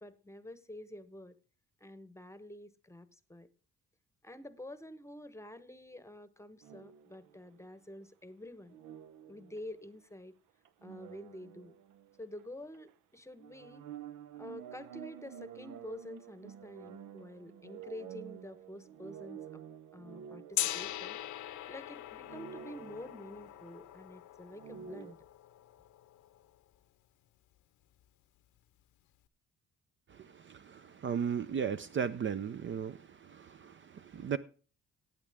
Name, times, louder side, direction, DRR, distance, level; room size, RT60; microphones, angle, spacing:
voice 1, 0.0-1.4 1.8-3.5 4.2-8.8 9.3-10.3 10.8-11.7 12.2-13.9 14.3-19.6 19.9-21.2 21.7-25.2, left 1 dB, 10° left, 0.9 m, -48 dB
sound 1, 6.6-7.6 8.7-10.0 10.6-12.5 12.7-12.9 13.4-21.9 22.2-23.8 24.5-25.1, right 9 dB, 85° right, 0.8 m, -50 dB
Gong, 20.5-26.5, left 13 dB, 80° left, 0.8 m, -41 dB
voice 2, 30.1-34.4, right 7 dB, 40° right, 0.5 m, -36 dB
15.0 x 8.8 x 3.5 m
cardioid pair, 90°, 30 cm